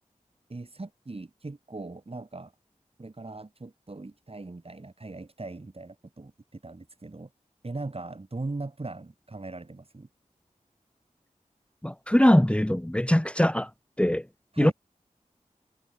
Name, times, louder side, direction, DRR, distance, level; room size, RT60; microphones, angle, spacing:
voice 1, 0.5-2.5 3.0-7.3 7.6-10.1 14.5-14.7, right 2 dB, 45° right, 7.3 m, -39 dB
voice 2, 11.8-13.7 14.0-14.3 14.6-14.7, left 1 dB, 10° left, 1.4 m, -21 dB
wide cardioid pair, 75°, 13 cm